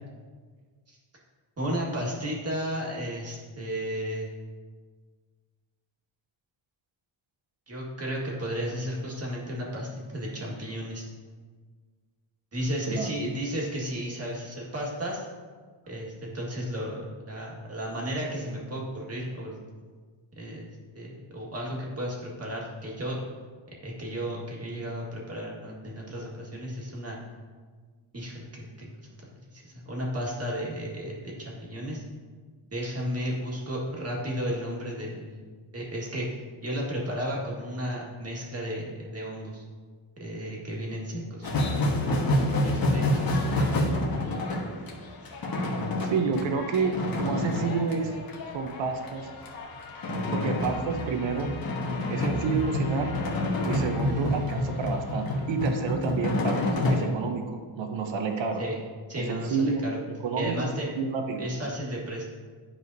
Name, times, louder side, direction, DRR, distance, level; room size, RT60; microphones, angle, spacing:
voice 1, 1.6-4.3 7.7-11.0 12.5-15.3 15.9-19.5 20.4-23.2 23.8-27.2 28.1-29.1 29.5-32.0 32.7-35.4 35.7-36.3 36.6-39.6 40.2-41.5 42.6-43.9 58.6-58.8 59.1-60.0 60.4-60.9 61.4-62.2, equal, 30° right, -3 dB, 1.8 m, -33 dB
sound 1, 41.4-57.1, left 1 dB, 45° left, 1.4 m, -28 dB
voice 2, 46.0-48.1 48.5-49.3 50.3-51.5 52.1-53.1 53.6-58.6 59.2-59.8 60.2-60.5 61.0-61.4, right 5 dB, 65° right, 5 dB, 0.9 m, -29 dB
10.5 x 4.9 x 2.7 m, 1.5 s
cardioid pair, 110°, 50 cm